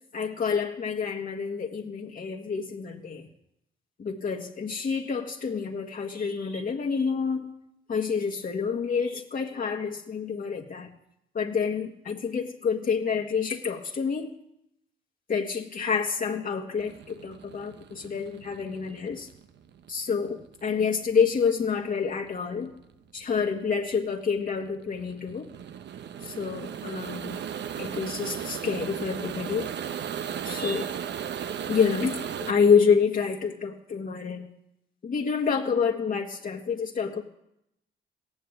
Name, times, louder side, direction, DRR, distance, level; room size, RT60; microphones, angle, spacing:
voice 1, 0.1-3.3 4.0-7.4 7.9-10.9 11.3-14.3 15.3-19.3 19.9-22.7 23.1-25.5 26.2-27.4 27.8-29.7 30.4-30.9 31.7-32.1 32.5-34.5 35.0-37.2, left 6 dB, 45° left, 0 dB, 1.5 m, -28 dB
sound 1, 16.8-32.5, right 8 dB, 65° right, 0.9 m, -36 dB
16.5 x 10.0 x 8.0 m, 0.81 s
cardioid pair, 90°, 20 cm